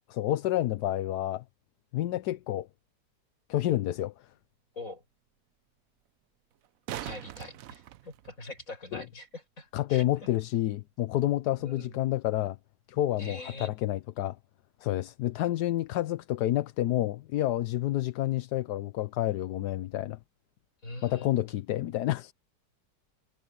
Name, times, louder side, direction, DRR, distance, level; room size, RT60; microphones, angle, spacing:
voice 1, 0.1-1.4 1.9-2.7 3.5-4.1 8.9-9.0 9.7-12.6 12.9-14.4 14.8-20.2 21.0-22.3, left 14 dB, 70° left, 1.2 m, -29 dB
sound 1, 3.7-3.8 6.5-8.7 11.5-11.6, right 12 dB, 65° right, 0.9 m, -41 dB
voice 2, 7.0-10.3 11.6-12.0 13.2-13.7 20.8-21.3, left 2 dB, 45° left, 6.8 m, -43 dB
omnidirectional pair, 1.9 m